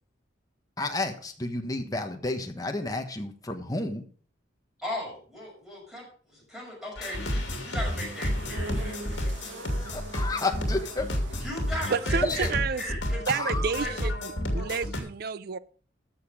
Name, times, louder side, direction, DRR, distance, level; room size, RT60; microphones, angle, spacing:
voice 1, 0.8-4.0 9.8-11.4 12.2-12.5 13.3-13.7, left 2 dB, 20° left, 5 dB, 1.3 m, -31 dB
voice 2, 4.8-9.7 11.4-14.1 14.5-14.8, left 1 dB, ahead, -4 dB, 6.0 m, -38 dB
sound 1, 7.0-15.0, equal, 70° left, 2.7 m, -31 dB
sound 2, 7.1-12.1, right 1 dB, 75° right, 2.0 m, -43 dB
voice 3, 11.9-13.0 13.3-15.6, right 5 dB, 55° right, 17 dB, 0.4 m, -30 dB
13.5 x 6.7 x 5.1 m, 0.43 s
head